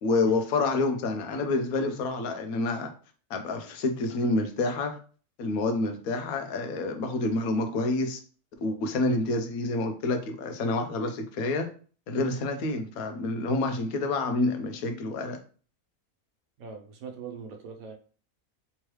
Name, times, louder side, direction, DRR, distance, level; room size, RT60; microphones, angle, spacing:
voice 1, 0.0-2.9 3.3-5.0 5.4-8.2 8.6-11.7 12.1-15.4, left 2 dB, 75° left, 6 dB, 1.1 m, -28 dB
voice 2, 16.6-17.9, right 6 dB, 75° right, 4 dB, 1.1 m, -41 dB
3.5 x 3.1 x 3.1 m, 0.40 s
omnidirectional pair, 1.6 m